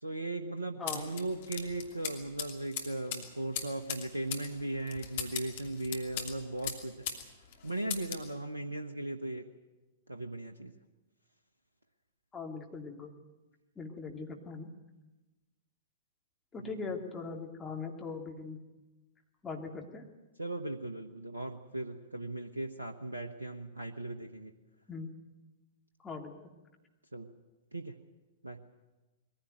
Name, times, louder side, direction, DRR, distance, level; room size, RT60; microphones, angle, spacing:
voice 1, 0.0-7.1 7.6-9.5 10.1-10.7 16.6-16.9 20.4-24.5 27.1-27.3 27.7-28.0 28.4-28.6, right 2 dB, 85° right, 6 dB, 1.0 m, -38 dB
sound 1, 0.9-7.3 7.5-8.3, left 8 dB, 50° left, 2.8 m, -39 dB
voice 2, 12.3-13.1 13.8-14.7 16.5-18.6 19.4-20.0 24.9-25.1 26.0-26.3, left 4 dB, 15° left, 1 dB, 2.8 m, -40 dB
22.0 x 15.5 x 9.2 m, 1.1 s
figure-of-eight pair, 105°, 0 cm